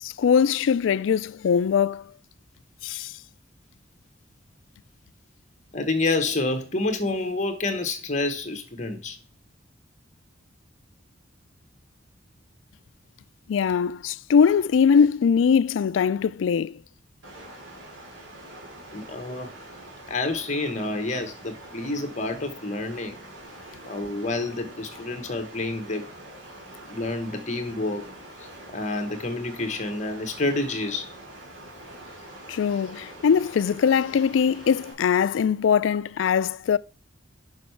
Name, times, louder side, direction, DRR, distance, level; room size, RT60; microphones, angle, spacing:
voice 1, 0.0-2.1 2.8-3.1 13.5-16.8 32.5-36.8, left 7 dB, 80° left, 0.3 m, -21 dB
voice 2, 5.7-9.2 18.9-19.5 20.1-23.2 23.9-26.1 26.8-28.1 28.7-31.1, left 2 dB, 40° left, 1.2 m, -28 dB
sound 1, 17.2-34.9, right 1 dB, 90° right, 2.4 m, -44 dB
6.3 x 5.6 x 4.5 m
head